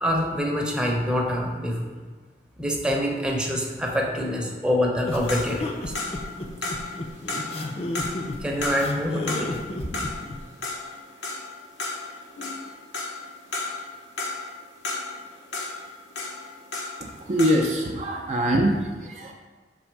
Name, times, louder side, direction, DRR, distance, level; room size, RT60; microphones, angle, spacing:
voice 1, 0.0-1.9 2.6-5.9 8.4-9.6, equal, 5° right, -1 dB, 0.7 m, -25 dB
sound 1, 5.0-10.4, left 1 dB, 35° left, 0.6 m, -32 dB
sound 2, 5.3-17.1 17.4-17.7, left 3 dB, 80° left, 1.0 m, -33 dB
voice 2, 17.0-19.3, equal, 40° right, 1 dB, 0.5 m, -24 dB
6.1 x 3.5 x 4.6 m, 1.4 s
head